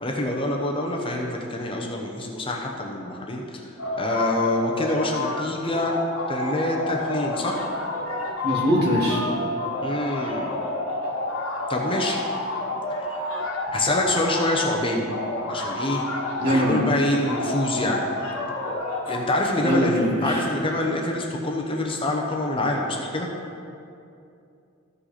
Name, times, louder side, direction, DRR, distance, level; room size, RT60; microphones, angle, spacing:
voice 1, 0.0-6.0 6.3-7.6 9.8-10.5 11.7-12.2 12.9-13.2 13.7-15.1 15.5-16.1 16.4-18.1 19.1-23.3, left 1 dB, 25° left, 0 dB, 0.8 m, -26 dB
sound 1, 3.8-5.4 5.7-14.6 15.1-16.8 17.2-19.6, left 2 dB, 70° left, 1.4 m, -29 dB
voice 2, 8.4-9.2 16.4-16.8 19.6-20.4, equal, 50° right, -4 dB, 2.1 m, -22 dB
14.0 x 5.4 x 4.2 m, 2.5 s
head